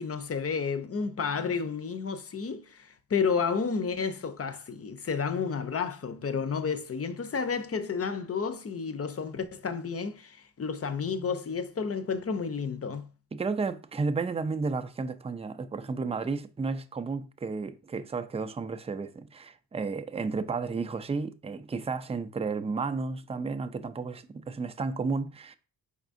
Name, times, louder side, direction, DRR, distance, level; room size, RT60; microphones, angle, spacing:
voice 1, 0.0-13.1, left 5 dB, 35° left, 0.6 m, -31 dB
voice 2, 13.3-25.5, right 4 dB, 15° right, 0.4 m, -32 dB
4.8 x 3.6 x 2.5 m
supercardioid pair, 45°, 43 cm